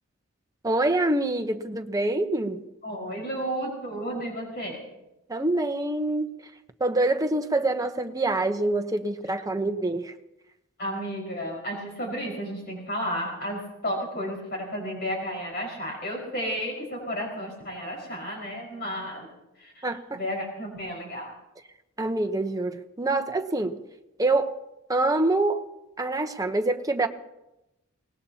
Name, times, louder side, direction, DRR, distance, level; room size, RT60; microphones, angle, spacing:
voice 1, 0.6-2.6 5.3-6.3 6.8-10.1 19.8-20.2 22.0-23.8 24.2-24.5 24.9-25.6 26.0-27.1, right 2 dB, 15° right, 7 dB, 0.9 m, -25 dB
voice 2, 2.8-4.8 10.8-19.3 19.6-21.3, equal, 50° left, -2 dB, 5.1 m, -32 dB
25.0 x 19.5 x 2.9 m, 0.94 s
head